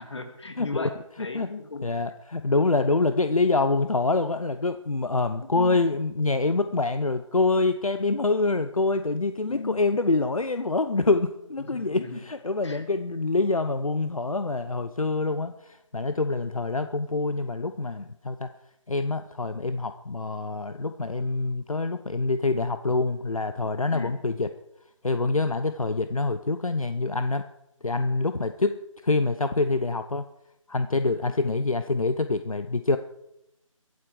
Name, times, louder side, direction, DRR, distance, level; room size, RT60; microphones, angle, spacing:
voice 1, 0.0-1.9 5.4-5.8 9.5-9.9 11.6-12.2 12.6-12.8 23.9-24.1, left 3 dB, 55° left, 6 dB, 2.6 m, -37 dB
voice 2, 0.6-0.9 1.3-1.5 1.8-18.5 18.9-24.5 25.0-27.4 27.8-28.8 29.0-30.3 30.7-33.0, left 3 dB, 85° left, 9 dB, 0.9 m, -26 dB
23.0 x 8.2 x 4.9 m, 0.83 s
figure-of-eight pair, 160°, 17 cm